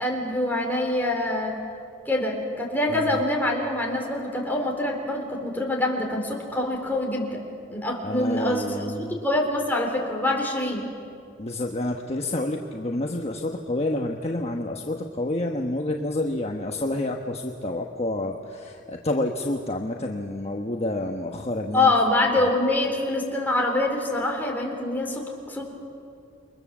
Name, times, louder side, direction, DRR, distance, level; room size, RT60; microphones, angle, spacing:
voice 1, 0.0-1.7 2.1-7.4 7.7-10.8 21.7-25.8, left 1 dB, 10° left, 0 dB, 3.9 m, -25 dB
voice 2, 2.9-3.2 8.0-9.2 11.4-21.9 22.3-22.5, left 1 dB, 35° left, 2 dB, 1.2 m, -29 dB
29.0 x 22.5 x 7.3 m, 2.5 s
head